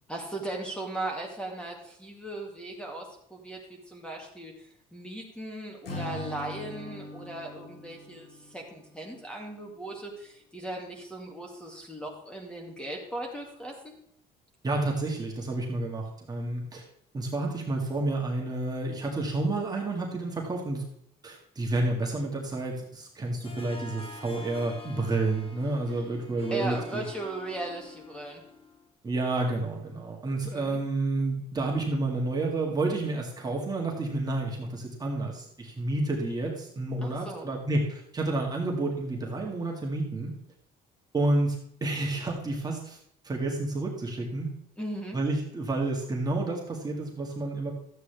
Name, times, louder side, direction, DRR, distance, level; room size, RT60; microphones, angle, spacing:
voice 1, 0.1-13.9 26.5-28.4 30.5-30.8 37.0-37.5 44.8-45.2, right 1 dB, 5° left, 0 dB, 2.2 m, -38 dB
Acoustic guitar / Strum, 5.8-9.1, left 1 dB, 75° left, 2.6 m, -41 dB
voice 2, 14.6-16.8 17.1-20.9 21.2-27.0 29.0-40.4 41.1-43.0 43.2-44.5 45.1-47.7, right 2 dB, 25° right, -1 dB, 1.9 m, -30 dB
Harp, 23.4-28.9, left 3 dB, 30° left, 1.7 m, -46 dB
12.5 x 8.4 x 3.4 m, 0.69 s
cardioid pair, 110°, 17 cm